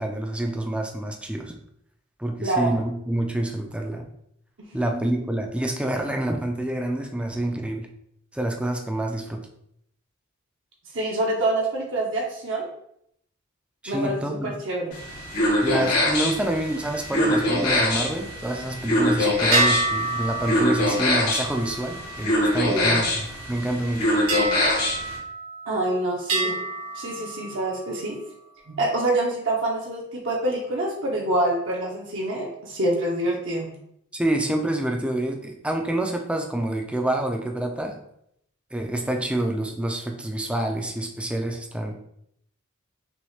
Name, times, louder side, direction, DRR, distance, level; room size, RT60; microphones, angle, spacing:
voice 1, 0.0-1.5 2.2-4.1 4.7-7.9 8.3-9.4 13.8-14.5 15.6-24.1 34.1-38.0 38.7-42.0, right 1 dB, 5° right, 3 dB, 0.5 m, -27 dB
voice 2, 4.6-5.0 10.9-12.7 13.9-15.0 22.7-23.1 25.7-26.6 26.9-28.2 28.7-33.7, right 1 dB, 60° right, -3 dB, 0.8 m, -26 dB
sound 1, 14.9-25.2, left 1 dB, 75° left, 1.6 m, -24 dB
sound 2, 19.5-23.2 24.3-25.8 26.3-28.0, right 2 dB, 85° right, 1.8 m, -29 dB
6.1 x 2.4 x 3.2 m, 0.73 s
head